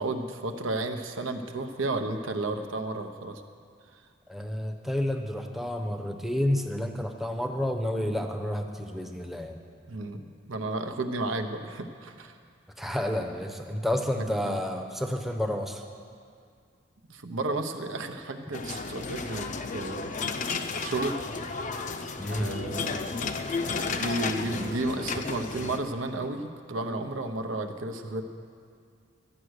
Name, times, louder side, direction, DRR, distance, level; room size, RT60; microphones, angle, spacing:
voice 1, 0.0-3.4 9.9-12.4 14.4-14.6 17.1-20.1 20.8-21.2 22.3-23.0 23.9-28.2, right 2 dB, 85° right, 6 dB, 0.8 m, -32 dB
voice 2, 4.3-9.6 12.8-15.8 22.2-22.5, left 1 dB, ahead, 4 dB, 0.7 m, -30 dB
sound 1, 18.5-25.8, left 4 dB, 40° left, 0.5 m, -33 dB
12.5 x 9.1 x 6.4 m, 2.2 s
head